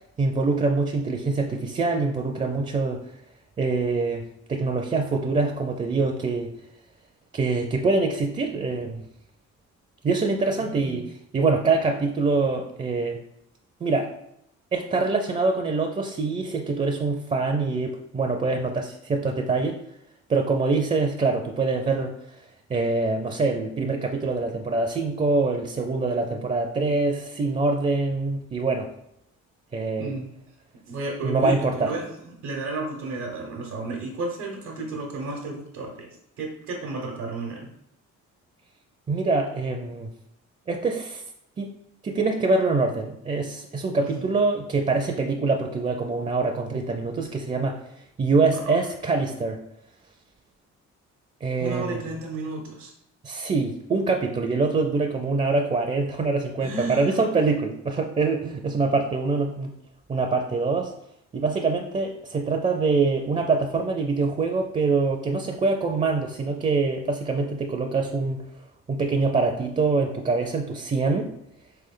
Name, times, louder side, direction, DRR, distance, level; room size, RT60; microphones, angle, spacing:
voice 1, 0.2-3.0 3.6-4.2 4.5-6.5 7.3-9.0 10.0-11.0 11.3-13.2 13.8-14.1 14.7-19.8 20.3-22.1 22.7-28.9 29.7-30.1 31.2-31.9 39.1-40.1 40.7-41.2 41.6-41.7 42.0-47.8 48.2-49.6 51.4-52.1 53.2-59.7 60.1-60.9 61.3-68.4 68.9-71.3, right 3 dB, 25° right, 3 dB, 0.4 m, -24 dB
voice 2, 10.6-11.0 30.0-30.3 30.9-36.1 36.4-37.7 44.0-44.2 48.5-48.8 51.6-52.9 56.6-57.3, right 3 dB, 85° right, -1 dB, 0.9 m, -33 dB
3.6 x 3.3 x 3.7 m, 0.77 s
cardioid pair, 90°, 30 cm